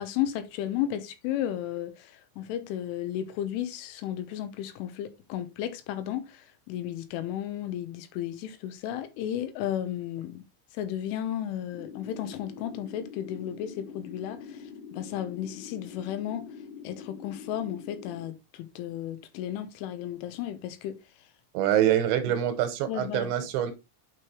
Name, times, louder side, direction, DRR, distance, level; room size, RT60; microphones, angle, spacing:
voice 1, 0.0-10.4 10.7-16.4 16.8-20.9 22.3-22.4 22.9-23.3, left 11 dB, 90° left, 3.3 m, -34 dB
sound 1, 11.7-18.3, left 6 dB, 40° left, 1.6 m, -44 dB
voice 2, 21.5-23.7, right 11 dB, 80° right, 2.9 m, -25 dB
8.9 x 4.8 x 3.2 m
omnidirectional pair, 5.7 m